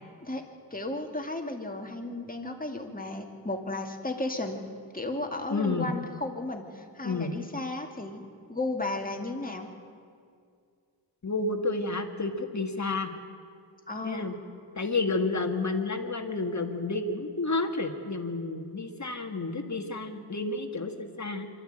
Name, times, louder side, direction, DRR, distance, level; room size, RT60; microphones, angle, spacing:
voice 1, 0.7-4.6 4.9-8.2 8.5-9.7 13.9-14.3, left 2 dB, 20° left, 3 dB, 2.5 m, -34 dB
voice 2, 5.5-5.9 7.0-7.3 11.2-13.1 14.0-14.3 14.7-21.5, left 3 dB, 40° left, 6 dB, 2.0 m, -30 dB
25.0 x 12.5 x 8.9 m, 2.3 s
cardioid pair, 55°, 44 cm